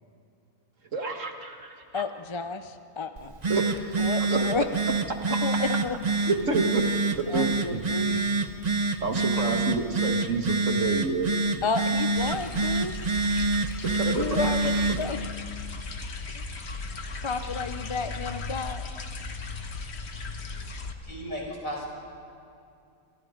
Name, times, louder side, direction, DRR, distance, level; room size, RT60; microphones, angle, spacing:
voice 1, 0.9-2.0 3.5-4.0 4.3-4.4 6.3-6.8 7.3-7.5 9.0-11.3 13.8-14.2, right 4 dB, 60° right, 4 dB, 2.1 m, -28 dB
voice 2, 1.9-3.3 4.0-4.7 5.4-6.0 7.3-8.3 9.5-9.6 11.6-12.9 14.1-15.3 16.3-16.4 17.2-18.9, left 4 dB, 30° left, 9 dB, 0.5 m, -31 dB
Telephone, 3.2-15.1, right 3 dB, 30° right, 1.1 m, -27 dB
sound 1, 12.2-20.9, left 3 dB, 50° left, 1.5 m, -37 dB
voice 3, 21.0-21.9, equal, 65° left, -1 dB, 5.7 m, -35 dB
27.5 x 27.0 x 5.2 m, 2.4 s
omnidirectional pair, 1.5 m